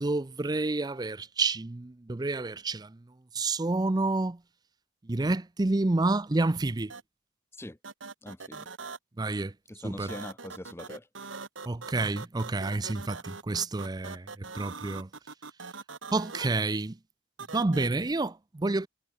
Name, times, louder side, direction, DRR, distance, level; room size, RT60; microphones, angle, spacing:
voice 1, 0.0-2.9 3.3-4.4 5.1-6.9 9.2-9.5 9.8-10.1 11.7-14.2 14.5-15.1 16.1-16.9 17.5-18.9, right 2 dB, 20° right, 0.5 m, -29 dB
sound 1, 6.9-7.0 7.8-9.0 10.1-16.5 17.4-17.9, right 4 dB, 80° right, 1.9 m, -42 dB
voice 2, 8.2-8.7 9.7-11.1, left 1 dB, 15° left, 0.9 m, -42 dB
head